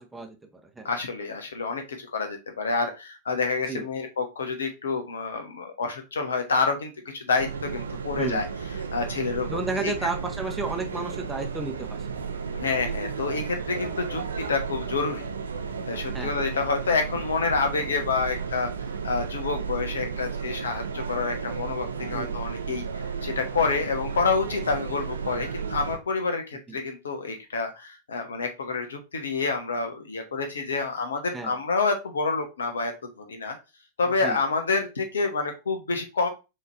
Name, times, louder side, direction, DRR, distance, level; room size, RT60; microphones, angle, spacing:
voice 1, 0.0-0.9 3.7-3.9 8.2-8.4 9.5-12.1 16.1-16.4 22.1-22.4 26.7-26.8 31.3-31.6 34.2-34.4, right 3 dB, 10° right, 3 dB, 0.9 m, -32 dB
voice 2, 0.8-8.5 8.9-9.9 12.5-15.2 15.9-18.7 19.0-22.8 23.2-33.6 34.0-36.3, left 4 dB, 70° left, 5 dB, 1.2 m, -28 dB
sound 1, 7.4-26.0, right 6 dB, 70° right, 0.6 m, -33 dB
5.6 x 3.3 x 2.7 m, 0.26 s
figure-of-eight pair, 90°, 0 cm